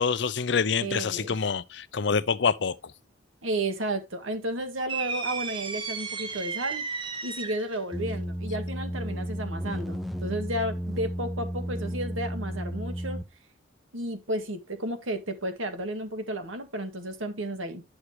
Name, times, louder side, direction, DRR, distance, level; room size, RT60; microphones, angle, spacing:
voice 1, 0.0-2.8, left 5 dB, 60° left, 0.6 m, -26 dB
voice 2, 0.8-1.4 3.4-6.8 7.2-13.2 13.9-17.8, right 1 dB, 85° right, 1.8 m, -32 dB
sound 1, 4.9-7.8, right 5 dB, 25° right, 1.0 m, -33 dB
sound 2, 7.9-13.3, equal, ahead, 0.5 m, -33 dB
9.8 x 6.4 x 3.0 m
head